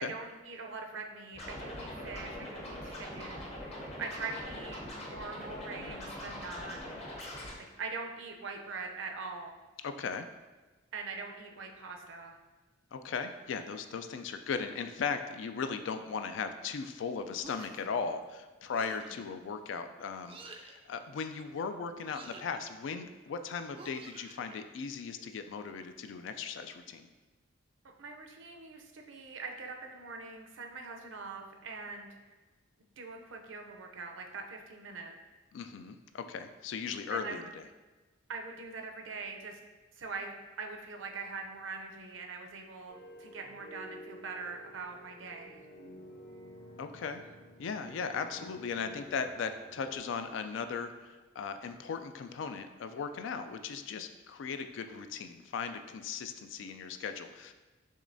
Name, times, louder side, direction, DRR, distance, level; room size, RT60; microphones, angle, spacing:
voice 1, 0.0-3.5 4.0-7.0 7.8-9.5 10.9-12.4 19.0-19.1 28.0-32.1 33.0-35.1 37.1-37.4 38.3-39.6 39.9-45.7, right 4 dB, 75° right, 3 dB, 0.6 m, -43 dB
Scratching (performance technique), 1.3-7.5, left 1 dB, 35° left, 0.8 m, -42 dB
voice 2, 9.8-10.3 12.9-27.1 35.5-37.6 46.8-47.2 47.6-57.5, left 5 dB, 70° left, 9 dB, 0.3 m, -37 dB
sound 1, 17.4-17.9 18.7-19.2 20.2-20.8 22.0-22.6 23.7-24.6, right 3 dB, 30° right, 0.4 m, -50 dB
sound 2, 42.9-50.0, equal, 85° left, 1.2 m, -51 dB
6.4 x 3.1 x 2.6 m, 1.2 s
head